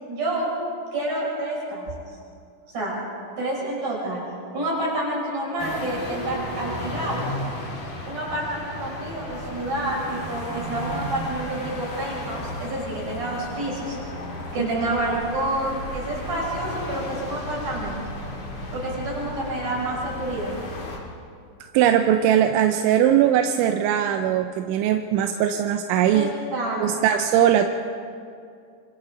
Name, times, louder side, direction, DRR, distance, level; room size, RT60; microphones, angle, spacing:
voice 1, 0.1-0.5 0.9-1.9 2.7-3.0 3.4-4.2 4.5-7.3 8.0-14.0 14.5-18.0 18.7-20.6 26.1-27.1, right 1 dB, 45° right, -4 dB, 7.5 m, -28 dB
sound 1, 5.6-21.0, left 1 dB, 45° left, 3.7 m, -34 dB
voice 2, 21.7-26.3 26.8-27.7, right 10 dB, 85° right, 6 dB, 3.1 m, -20 dB
26.0 x 26.0 x 3.8 m, 2.4 s
omnidirectional pair, 5.2 m